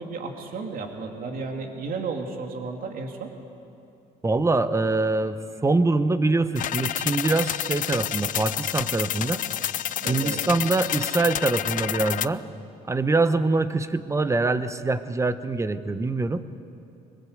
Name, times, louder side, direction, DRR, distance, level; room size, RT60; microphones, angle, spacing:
voice 1, 0.0-3.3 10.0-10.4, right 4 dB, 60° right, 3 dB, 2.7 m, -33 dB
voice 2, 4.2-9.4 10.1-12.4 12.9-16.4, right 3 dB, 15° right, 12 dB, 1.0 m, -24 dB
sound 1, 6.6-12.3, left 11 dB, 50° left, 0.5 m, -29 dB
23.0 x 21.0 x 8.1 m, 2.7 s
cardioid pair, 110°, 17 cm